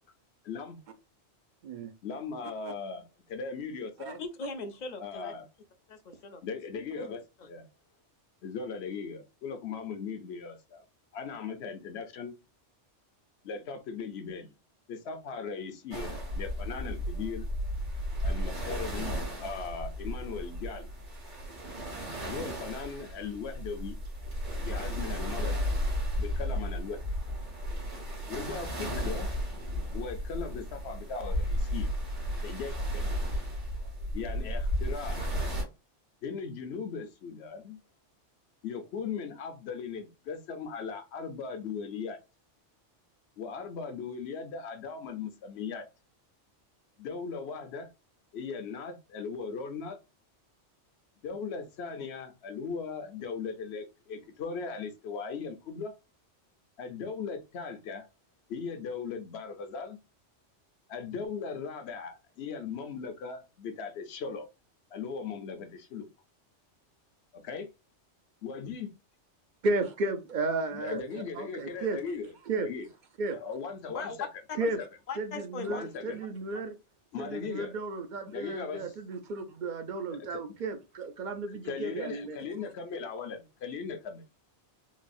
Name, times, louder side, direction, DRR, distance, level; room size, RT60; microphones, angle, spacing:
voice 1, 0.4-0.8 2.0-4.2 5.0-5.4 6.4-7.7 8.4-10.8 11.1-12.3 13.4-14.5 14.9-17.5 18.2-20.9 22.2-24.0 24.7-25.6 26.2-27.0 28.3-29.3 29.9-31.9 32.4-33.1 34.1-35.3 36.2-37.8 38.6-42.2 43.4-45.9 47.0-47.9 48.3-50.0 51.2-55.9 56.8-58.1 58.5-60.0 60.9-64.5 64.9-66.1 67.3-67.7 68.4-68.9 70.7-72.3 72.6-72.9 73.3-74.3 74.6-74.9 75.7-76.2 77.1-77.7 78.3-78.9 80.2-80.4 81.6-84.2, left 5 dB, 65° left, 0.9 m, -38 dB
voice 2, 4.2-5.3 5.9-6.4 6.7-7.5 73.9-74.2 74.5-74.6 75.1-75.8, left 4 dB, 50° left, 0.6 m, -40 dB
sound 1, 15.9-35.6, equal, 70° right, 2.1 m, -34 dB
voice 3, 69.6-72.0 72.5-72.7 73.2-73.4 74.6-74.8 75.2-76.7 77.2-82.4, right 3 dB, 55° right, 0.5 m, -33 dB
4.0 x 2.3 x 2.5 m
omnidirectional pair, 1.2 m